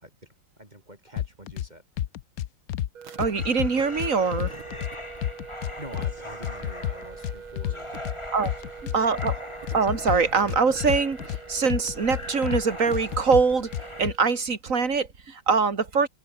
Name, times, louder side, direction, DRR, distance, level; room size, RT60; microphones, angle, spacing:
voice 1, 0.6-2.1 5.8-8.1 8.4-9.1, right 1 dB, 20° right, 5.1 m, -46 dB
sound 1, 1.2-1.7 2.0-2.9 3.2-4.9 5.2-6.1 6.4-8.2 8.5-9.4 9.7-11.4 11.7-12.6 12.9-14.1, left 12 dB, 65° left, 1.0 m, -30 dB
sound 2, 3.0-14.3, right 6 dB, 85° right, 3.1 m, -43 dB
voice 2, 3.2-4.5 8.3-8.5 8.9-9.4 9.7-11.2 11.5-13.7 14.0-16.1, right 5 dB, 40° right, 2.7 m, -23 dB
sound 3, 3.3-14.1, left 1 dB, 15° left, 3.0 m, -42 dB
omnidirectional pair, 2.2 m